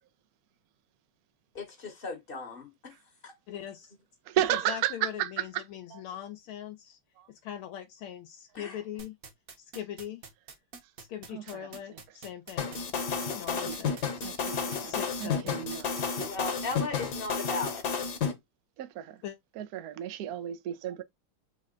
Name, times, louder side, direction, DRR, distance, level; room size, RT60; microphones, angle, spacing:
voice 1, 1.5-2.9 3.2-3.3 8.5-8.8 16.2-17.8, left 3 dB, 35° left, 0.9 m, -37 dB
voice 2, 3.5-3.9 4.5-7.0 7.3-9.1 9.6-10.2 11.0-12.9 13.3-14.3 14.8-15.7 16.1-16.2 19.2-19.4, left 10 dB, 80° left, 1.5 m, -41 dB
voice 3, 4.3-5.6 5.9-6.0 7.2-7.3 11.3-12.0 13.2-13.4 13.6-13.8 14.2-16.5 18.8-19.2 19.6-21.0, right 12 dB, 75° right, 0.8 m, -34 dB
sound 1, 9.0-16.8, right 5 dB, 50° right, 1.2 m, -46 dB
sound 2, 12.6-18.3, left 6 dB, 55° left, 1.4 m, -31 dB
3.9 x 3.3 x 3.7 m
omnidirectional pair, 2.4 m